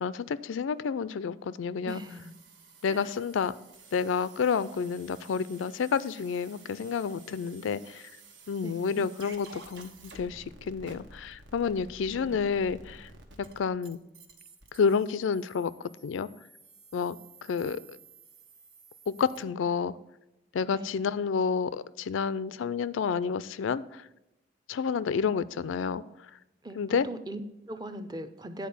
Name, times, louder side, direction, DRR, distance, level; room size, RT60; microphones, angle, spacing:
voice 1, 0.0-2.0 2.8-3.6 3.9-8.0 8.5-13.1 13.6-14.0 14.7-15.7 16.0-16.3 16.9-17.2 17.5-18.0 19.1-19.9 20.5-24.0 24.7-26.0 26.8-27.1, left 6 dB, 90° left, 17 dB, 0.4 m, -29 dB
voice 2, 1.8-2.4 2.9-3.1 8.6-9.1 12.1-12.4 20.7-20.9 26.6-28.7, right 1 dB, 20° right, 9 dB, 0.5 m, -40 dB
tmtr fdbk, 1.9-19.4, right 3 dB, 75° right, 1.2 m, -53 dB
9.4 x 4.2 x 7.0 m, 0.95 s
head